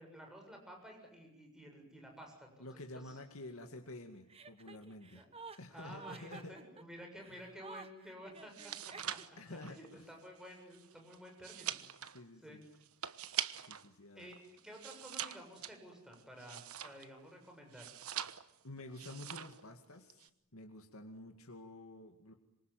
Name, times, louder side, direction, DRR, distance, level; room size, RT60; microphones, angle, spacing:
voice 1, 0.0-2.7 2.9-3.2 5.1-5.3 5.7-8.7 9.1-9.2 9.5-11.8 12.4-12.6 14.1-14.4 14.6-18.0, equal, 5° right, 1 dB, 7.5 m, -52 dB
voice 2, 2.6-5.2 5.6-6.6 7.3-7.5 9.4-10.1 12.1-12.6 13.7-14.3 18.6-22.3, left 2 dB, 80° left, 4 dB, 2.3 m, -50 dB
Chuckle chortle, 4.3-9.5, right 4 dB, 30° right, 1.4 m, -52 dB
sound 1, 8.4-13.9 14.2-17.2 17.7-18.6 18.9-19.6 19.9-20.3, right 11 dB, 90° right, 1.2 m, -43 dB
26.5 x 23.5 x 9.4 m, 0.79 s
head